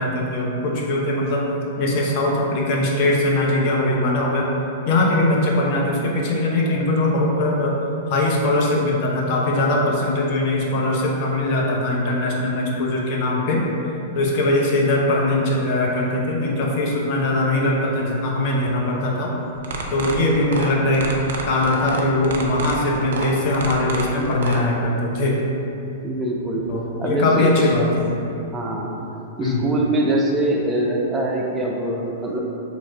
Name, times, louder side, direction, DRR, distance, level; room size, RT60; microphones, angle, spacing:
voice 1, 0.0-1.5 1.8-4.5 4.9-7.8 8.1-13.6 14.1-19.3 19.9-21.1 21.4-25.4 26.7-28.1 29.4-29.7, left 1 dB, 50° left, -2 dB, 0.7 m, -21 dB
sound 1, 19.5-24.6, right 3 dB, 70° right, 0.5 m, -28 dB
voice 2, 26.0-26.7 27.0-27.7 28.5-29.1 29.4-32.4, right 1 dB, 15° right, -1 dB, 0.4 m, -23 dB
3.0 x 2.5 x 4.4 m, 2.8 s
hypercardioid pair, 120°, 0 cm